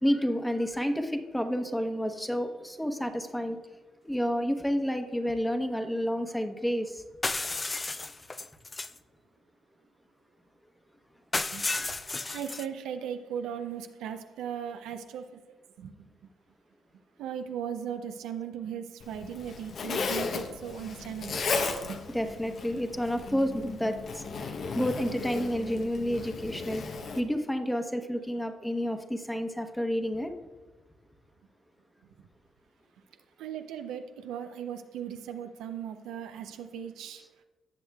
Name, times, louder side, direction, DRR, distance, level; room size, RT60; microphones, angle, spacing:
voice 1, 0.0-3.6 4.0-7.0 11.8-11.9 22.1-30.3 37.2-37.3, equal, 5° left, 6 dB, 1.0 m, -30 dB
sound 1, 7.2-9.0 11.3-12.7, left 3 dB, 25° left, 0.4 m, -33 dB
voice 2, 12.3-15.4 15.8-16.1 17.2-21.4 21.8-22.0 33.4-37.2, right 8 dB, 85° right, 7 dB, 0.5 m, -38 dB
Zipper (clothing), 19.0-27.2, left 4 dB, 60° left, 0.8 m, -35 dB
16.5 x 6.4 x 2.3 m, 1.3 s
supercardioid pair, 65°, 0 cm